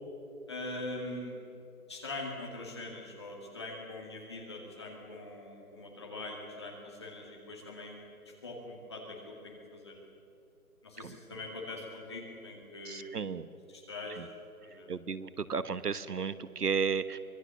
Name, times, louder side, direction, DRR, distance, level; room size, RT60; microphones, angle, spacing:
voice 1, 0.5-1.4 1.9-8.0 8.2-10.0 10.8-13.2 13.7-14.3 14.6-14.9, left 2 dB, 20° left, -1 dB, 2.3 m, -42 dB
voice 2, 12.9-13.5 14.9-17.2, right 5 dB, 85° right, 14 dB, 1.2 m, -33 dB
24.5 x 21.0 x 7.0 m, 2.6 s
figure-of-eight pair, 175°, 45 cm